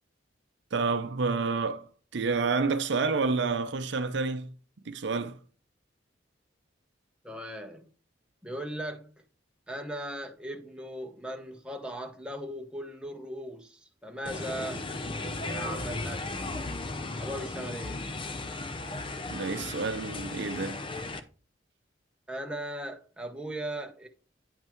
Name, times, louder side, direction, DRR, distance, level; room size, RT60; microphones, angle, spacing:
voice 1, 0.7-1.9 2.1-4.5 4.9-5.4 19.3-20.8, right 4 dB, 65° right, 0.6 m, -29 dB
voice 2, 7.2-7.9 8.4-9.1 9.7-14.9 15.5-16.5 17.2-18.0 22.3-24.1, right 1 dB, 5° right, 0.9 m, -38 dB
sound 1, 14.3-21.2, left 2 dB, 30° left, 0.6 m, -36 dB
9.0 x 5.5 x 3.0 m
head